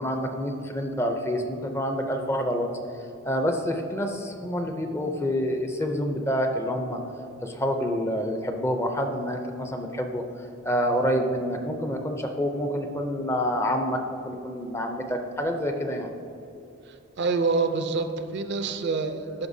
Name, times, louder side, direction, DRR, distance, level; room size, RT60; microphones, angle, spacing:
voice 1, 0.0-2.7 2.9-7.0 7.4-16.1, equal, 15° left, 4 dB, 0.4 m, -28 dB
voice 2, 16.9-19.5, right 4 dB, 55° right, 8 dB, 0.4 m, -27 dB
11.0 x 5.5 x 2.7 m, 2.7 s
head